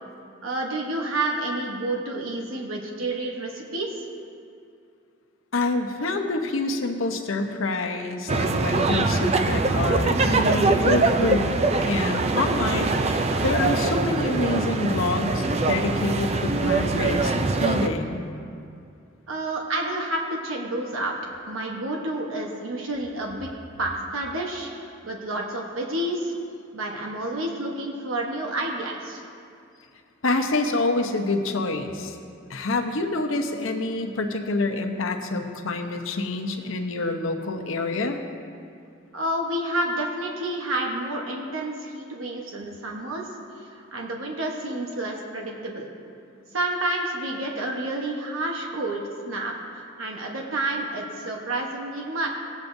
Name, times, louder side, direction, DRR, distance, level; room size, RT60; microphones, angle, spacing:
voice 1, 0.4-4.1 19.3-21.2 21.5-23.5 23.8-24.7 25.0-26.3 26.7-29.2 39.1-43.3 43.6-45.9 46.5-52.3, right 1 dB, 90° right, 0 dB, 1.1 m, -29 dB
voice 2, 5.5-11.5 11.9-17.3 17.6-18.2 30.2-32.2 32.5-38.2, left 2 dB, 80° left, 4 dB, 0.8 m, -27 dB
sound 1, 8.3-17.9, right 3 dB, 30° right, 0.4 m, -23 dB
17.0 x 8.2 x 2.7 m, 2.4 s
head